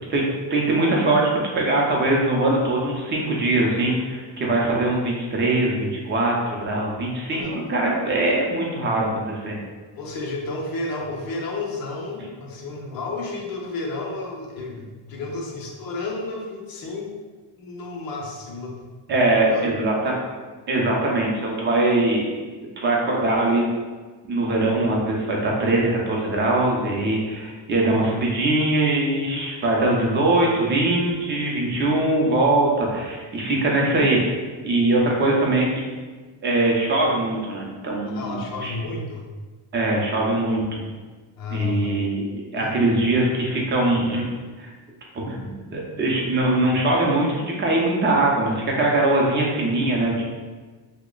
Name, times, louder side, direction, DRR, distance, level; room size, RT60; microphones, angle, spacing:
voice 1, 0.0-9.6 19.1-20.2 20.7-22.3 22.8-23.7 24.2-35.8 36.4-38.7 39.7-40.6 41.5-44.3 44.6-44.7 45.1-50.2, right 2 dB, 25° right, -2 dB, 0.6 m, -22 dB
voice 2, 7.3-7.6 9.9-17.1 17.6-18.8 19.5-19.7 38.1-39.3 40.6-40.8 41.4-41.9 42.6-42.7, left 3 dB, 50° left, 0 dB, 0.7 m, -31 dB
2.9 x 2.2 x 3.7 m, 1.3 s
cardioid pair, 135°, 47 cm